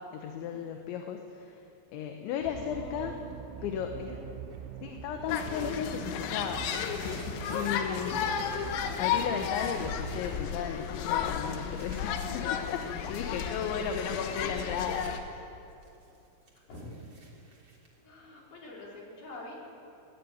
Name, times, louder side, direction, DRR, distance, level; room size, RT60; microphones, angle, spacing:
voice 1, 0.1-1.6 1.9-3.1 3.6-4.1 4.8-6.6 7.5-8.3 9.0-15.4, left 8 dB, 75° left, 4 dB, 3.2 m, -35 dB
voice 2, 2.3-3.3 3.7-4.2 5.5-5.7 14.1-14.4 16.7-17.0 18.0-19.6, left 1 dB, 50° left, -4 dB, 6.2 m, -47 dB
sound 1, 2.4-10.2, right 9 dB, 80° right, 3.1 m, -44 dB
sound 2, 4.5-4.9 5.2-7.9 8.2-8.8 9.0-12.1 12.6-15.2 15.5-18.7, right 2 dB, 25° right, 3.0 m, -54 dB
sound 3, 5.3-15.2, left 8 dB, 90° left, 4.0 m, -33 dB
19.0 x 18.0 x 9.4 m, 2.7 s
omnidirectional pair, 5.9 m